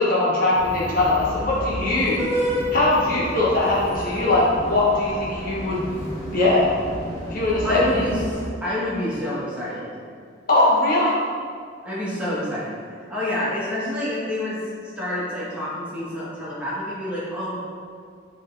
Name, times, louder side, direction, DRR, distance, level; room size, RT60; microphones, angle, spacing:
voice 1, 0.0-2.2 2.7-5.8 6.3-6.7 7.3-8.0 10.5-11.1, left 2 dB, 45° left, -6 dB, 1.2 m, -20 dB
sound 1, 0.5-8.5, equal, 15° left, 1.7 m, -31 dB
voice 2, 7.6-9.9 11.8-12.7 13.1-14.6 15.0-17.6, left 1 dB, 5° right, -9 dB, 1.6 m, -27 dB
8.1 x 3.7 x 4.0 m, 2.2 s
head